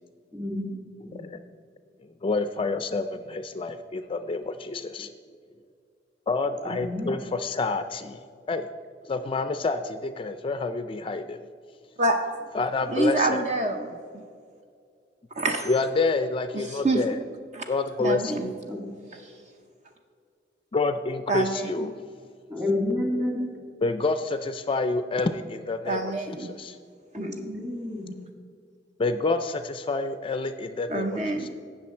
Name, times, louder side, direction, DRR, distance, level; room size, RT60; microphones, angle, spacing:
voice 1, 1.0-1.4 2.2-5.1 6.3-8.2 8.5-8.7 9.1-11.4 12.5-13.5 15.7-17.2 17.7-18.5 20.7-22.1 23.8-26.8 29.0-31.5, left 3 dB, 30° left, 10 dB, 0.4 m, -28 dB
voice 2, 12.9-14.2 15.4-15.7 16.5-17.0 17.5-17.6 18.0-18.5 19.1-19.3 21.3-21.9 25.9-26.6 27.1-27.7 30.9-31.5, right 2 dB, 40° right, 5 dB, 0.6 m, -27 dB
voice 3, 22.5-23.5 27.1-28.1, left 1 dB, 15° right, 1 dB, 2.1 m, -29 dB
17.5 x 6.3 x 4.3 m, 2.3 s
head